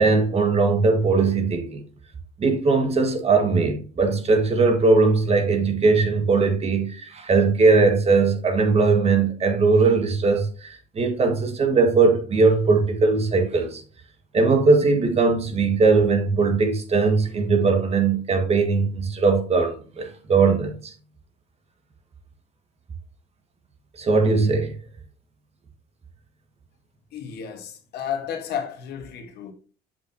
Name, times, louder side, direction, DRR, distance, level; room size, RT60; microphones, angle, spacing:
voice 1, 0.0-1.8 2.4-13.8 14.3-20.9 24.0-24.7, right 4 dB, 40° right, 1.6 m, -20 dB
voice 2, 27.1-29.5, left 8 dB, 70° left, 1.5 m, -32 dB
7.1 x 6.1 x 2.8 m
cardioid pair, 110°, 17 cm